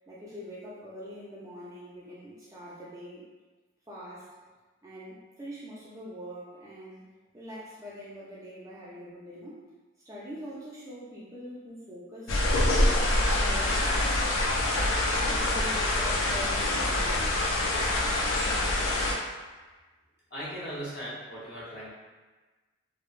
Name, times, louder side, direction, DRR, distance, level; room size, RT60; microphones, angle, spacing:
voice 1, 0.1-3.3 3.9-4.3 4.8-7.1 7.3-9.6 10.0-12.4 13.3-13.9 14.7-17.5, equal, 15° right, -7 dB, 0.3 m, -43 dB
sound 1, 12.3-19.1, left 1 dB, 75° left, 0.4 m, -25 dB
voice 2, 20.3-21.9, equal, 55° left, -9 dB, 1.0 m, -38 dB
3.1 x 2.0 x 2.4 m, 1.3 s
head